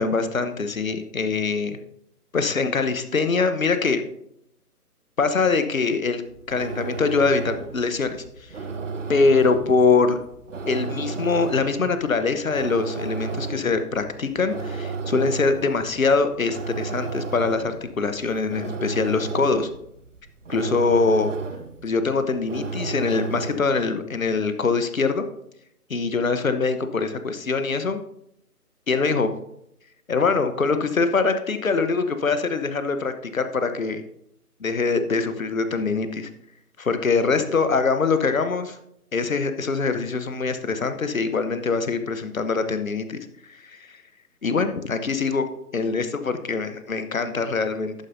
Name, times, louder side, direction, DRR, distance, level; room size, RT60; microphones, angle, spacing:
voice 1, 0.0-1.8 2.3-4.0 5.2-6.2 6.5-8.5 9.1-10.2 10.7-19.7 20.5-21.3 21.8-25.2 25.9-28.0 28.9-29.3 30.1-34.0 34.6-36.3 36.8-38.8 39.1-44.0 44.4-45.5 45.7-47.9, left 4 dB, 60° left, 10 dB, 1.1 m, -23 dB
sound 1, 6.3-23.9, right 4 dB, 55° right, 0.8 m, -33 dB
11.5 x 9.1 x 2.7 m, 0.77 s
figure-of-eight pair, 145°, 46 cm